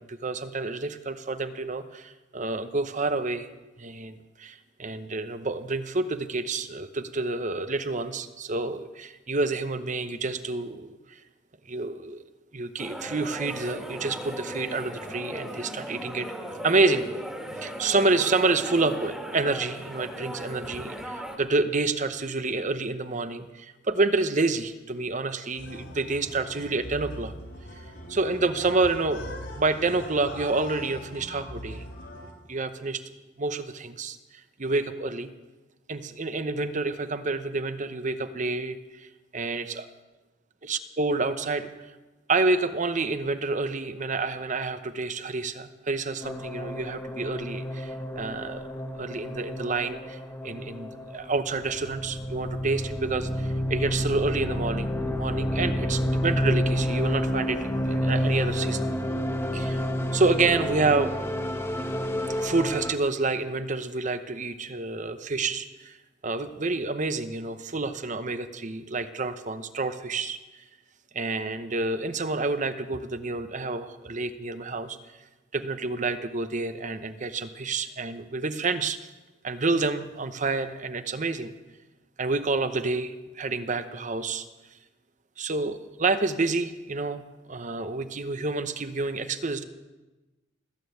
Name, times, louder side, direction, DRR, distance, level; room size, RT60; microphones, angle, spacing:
voice 1, 0.1-3.5 3.8-11.2 11.7-12.2 12.5-16.3 16.6-17.0 17.6-27.3 28.1-29.2 29.5-31.8 32.5-33.0 33.4-34.2 34.6-35.3 35.9-39.1 39.3-39.9 40.6-41.7 42.3-48.7 49.0-50.2 50.4-58.9 59.5-59.8 60.1-61.1 62.4-66.0 66.2-70.4 71.1-75.0 75.5-79.0 79.4-81.5 82.2-84.5 85.4-87.2 87.5-89.7, right 3 dB, 40° right, 10 dB, 0.9 m, -28 dB
sound 1, 12.8-21.4, equal, 5° right, 2.0 m, -37 dB
sound 2, 25.6-32.3, left 1 dB, 70° left, 3.7 m, -41 dB
sound 3, 46.2-62.9, equal, 15° left, 1.1 m, -29 dB
19.5 x 9.1 x 7.9 m, 1.1 s
head